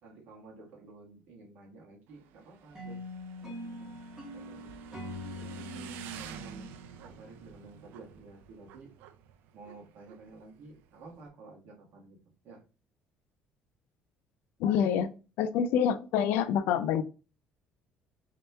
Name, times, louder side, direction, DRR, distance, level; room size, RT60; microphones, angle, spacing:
voice 1, 0.0-3.0 3.4-4.0 4.3-4.8 5.3-6.8 7.0-8.9 9.5-12.6, right 3 dB, 55° right, -1 dB, 1.4 m, -52 dB
Motorcycle / Engine, 2.1-11.3, right 9 dB, 80° right, 0.4 m, -49 dB
sound 1, 2.7-7.9, left 1 dB, 20° right, 1.6 m, -44 dB
voice 2, 14.6-15.1 15.4-17.0, left 8 dB, 75° left, 11 dB, 0.4 m, -26 dB
3.2 x 2.9 x 3.3 m, 0.33 s
cardioid pair, 160°, 3 cm